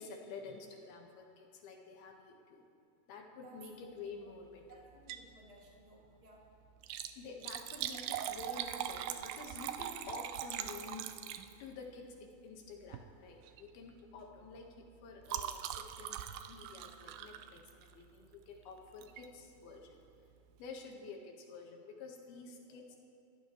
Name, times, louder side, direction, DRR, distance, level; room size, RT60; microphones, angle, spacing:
voice 1, 0.0-2.7 3.1-4.8 7.2-11.1 11.6-20.0 20.6-23.0, left 4 dB, 70° left, 2 dB, 3.2 m, -50 dB
voice 2, 4.7-6.4 21.0-21.1, right 2 dB, 25° right, -3 dB, 0.8 m, -59 dB
Liquid, 4.9-5.3 5.7-5.8 6.7-11.8 12.8-13.1 13.4-13.7 14.0-18.1 19.0-19.3 19.8-19.9 20.1-20.2, right 11 dB, 80° right, 2.3 m, -42 dB
28.0 x 14.5 x 3.1 m, 2.5 s
omnidirectional pair, 4.8 m